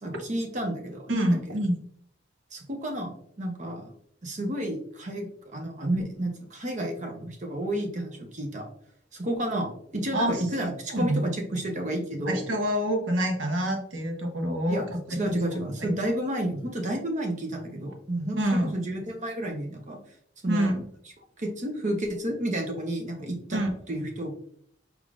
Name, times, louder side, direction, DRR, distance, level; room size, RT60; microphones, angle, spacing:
voice 1, 0.0-1.4 2.5-3.9 4.2-8.7 9.1-12.4 14.7-20.0 20.4-20.7 21.4-23.6 23.9-24.3, right 1 dB, 40° right, 2 dB, 0.8 m, -31 dB
voice 2, 1.1-1.8 10.1-10.4 10.9-11.2 12.3-15.4 15.8-15.9 18.4-18.7 20.5-20.9 23.5-23.7, equal, 85° right, 4 dB, 0.9 m, -26 dB
4.7 x 3.6 x 2.5 m, 0.65 s
head